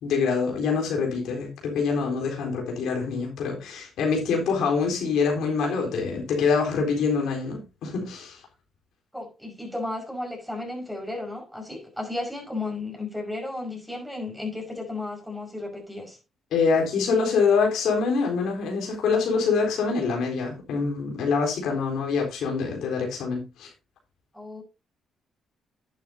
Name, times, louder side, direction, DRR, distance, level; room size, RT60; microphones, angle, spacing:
voice 1, 0.0-8.4 16.5-23.7, left 5 dB, 80° left, 3.9 m, -25 dB
voice 2, 9.1-16.2 24.3-24.6, left 2 dB, ahead, 5.4 m, -34 dB
11.0 x 9.2 x 2.8 m
cardioid pair, 90°, 0 cm